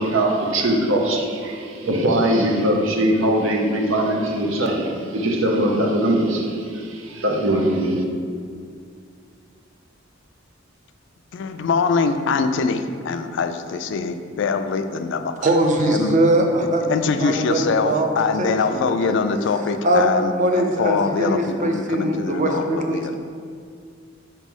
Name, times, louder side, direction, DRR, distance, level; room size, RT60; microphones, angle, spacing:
voice 1, 0.0-8.0, right 1 dB, 85° right, 2 dB, 0.8 m, -21 dB
voice 2, 11.3-15.5 15.8-16.2 16.9-23.2, left 4 dB, 65° left, 8 dB, 0.3 m, -23 dB
voice 3, 15.4-18.1 18.4-19.2 19.8-23.2, right 1 dB, 40° right, 3 dB, 0.6 m, -21 dB
5.7 x 3.1 x 5.4 m, 2.2 s
head